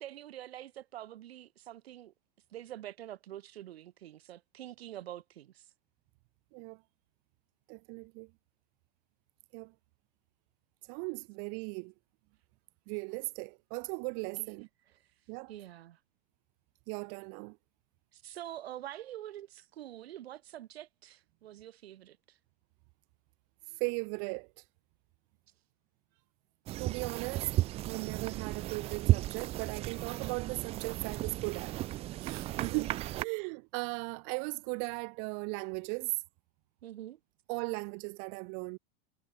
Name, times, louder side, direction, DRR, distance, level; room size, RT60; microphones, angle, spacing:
voice 1, 0.0-2.1 2.5-5.7 14.4-14.5 14.9-15.1 15.5-16.0 18.1-22.4 32.6-32.9 36.8-37.2, right 13 dB, 85° right, 6.4 m, -46 dB
voice 2, 7.7-8.3 9.5-9.7 10.9-11.9 12.9-14.7 15.3-15.5 16.9-17.6 23.7-24.5 26.8-27.5 27.9-31.8 32.2-32.9 33.2-36.1 37.5-38.8, right 40 dB or more, 40° right, 5.7 m, -37 dB
sound 1, 26.7-33.2, right 15 dB, 20° right, 0.6 m, -34 dB
supercardioid pair, 165°, 30 cm